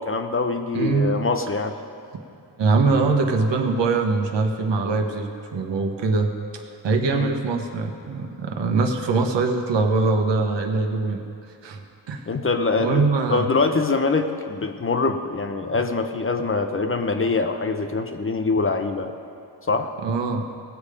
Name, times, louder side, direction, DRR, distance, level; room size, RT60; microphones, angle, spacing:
voice 1, 0.0-1.7 7.1-7.3 12.3-19.1 19.7-19.9, left 3 dB, 30° left, 6 dB, 0.7 m, -24 dB
voice 2, 0.7-1.2 2.6-11.2 11.6-12.3 12.8-13.5 20.0-20.4, right 3 dB, 75° right, 4 dB, 1.2 m, -23 dB
18.0 x 6.9 x 5.0 m, 2.6 s
wide cardioid pair, 120°, 44 cm